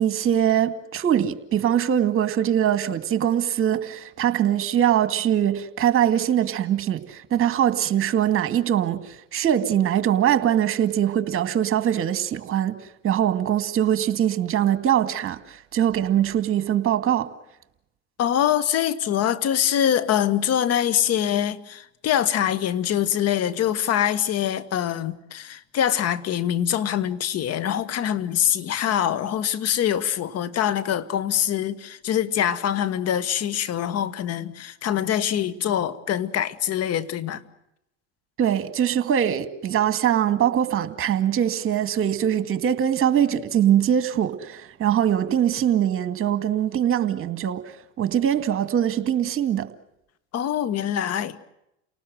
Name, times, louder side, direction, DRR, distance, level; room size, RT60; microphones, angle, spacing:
voice 1, 0.0-12.8 13.0-17.3 38.4-47.6 48.0-49.7, right 10 dB, 40° right, 2.3 m, -22 dB
voice 2, 18.2-37.4 50.3-51.4, left 10 dB, 45° left, 1.7 m, -24 dB
29.5 x 19.0 x 7.8 m
hypercardioid pair, 85°, 34 cm